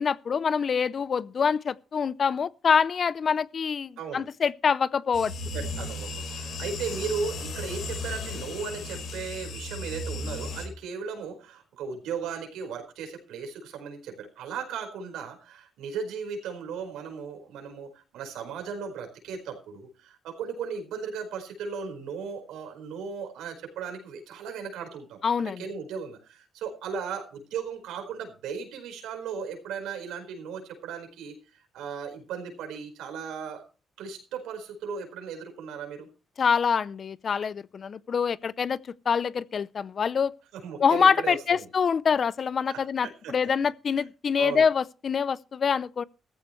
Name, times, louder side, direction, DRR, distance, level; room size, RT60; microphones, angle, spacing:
voice 1, 0.0-5.3 25.2-25.6 36.4-38.8 39.1-40.3 40.8-46.0, left 6 dB, 45° left, 0.6 m, -25 dB
voice 2, 4.0-4.3 5.5-25.2 25.4-33.6 34.0-36.1 40.5-41.6 42.7-43.3 44.4-44.7, right 6 dB, 90° right, 4.8 m, -36 dB
sound 1, 5.1-10.7, left 2 dB, 70° left, 4.6 m, -35 dB
15.5 x 14.5 x 3.2 m
cardioid pair, 90°, 0 cm